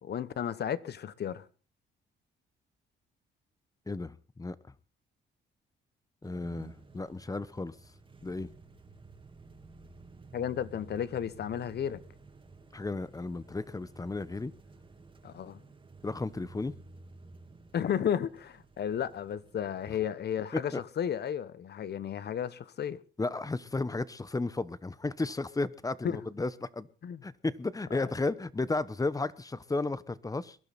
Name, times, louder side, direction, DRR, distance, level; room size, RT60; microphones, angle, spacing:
voice 1, 0.0-1.4 10.3-12.0 15.2-15.6 17.7-23.0 26.0-26.2 27.0-27.2 27.9-28.0, left 9 dB, 55° left, 1.1 m, -33 dB
voice 2, 3.9-4.6 6.2-7.7 8.2-8.5 12.7-14.5 16.0-16.7 20.5-20.8 23.2-26.9 27.2-30.6, left 3 dB, 15° left, 0.9 m, -33 dB
sound 1, 6.2-20.1, right 3 dB, 25° right, 2.6 m, -53 dB
22.0 x 12.0 x 4.2 m
cardioid pair, 90°, 20 cm